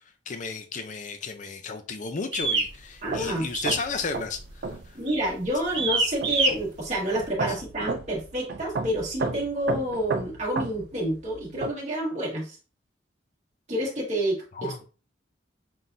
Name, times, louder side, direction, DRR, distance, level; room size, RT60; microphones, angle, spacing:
voice 1, 0.3-5.0 14.5-14.8, left 4 dB, 40° left, 0.5 m, -33 dB
sound 1, 2.3-2.7 3.5-3.9 4.2-4.5 5.1-5.3 5.7-6.5, right 3 dB, 70° right, 1.3 m, -25 dB
voice 2, 3.0-3.4 4.9-12.6 13.7-14.8, equal, 40° right, 1.5 m, -29 dB
sound 2, 3.1-11.7, right 3 dB, 55° right, 0.4 m, -34 dB
5.9 x 2.2 x 2.6 m
head